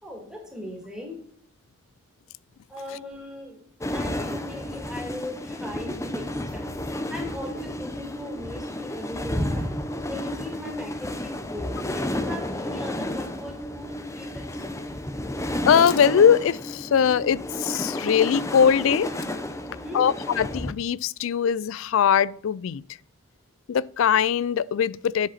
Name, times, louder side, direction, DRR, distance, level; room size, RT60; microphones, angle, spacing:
voice 1, 0.0-1.2 2.7-3.6 3.9-6.8 7.1-9.7 10.1-14.6 19.7-20.1, left 1 dB, 5° right, 2.6 m, -38 dB
sound 1, 3.8-20.7, left 1 dB, 15° left, 0.7 m, -31 dB
voice 2, 15.7-19.1 19.9-22.8 23.7-25.3, left 8 dB, 65° left, 0.3 m, -21 dB
10.5 x 7.7 x 4.2 m
head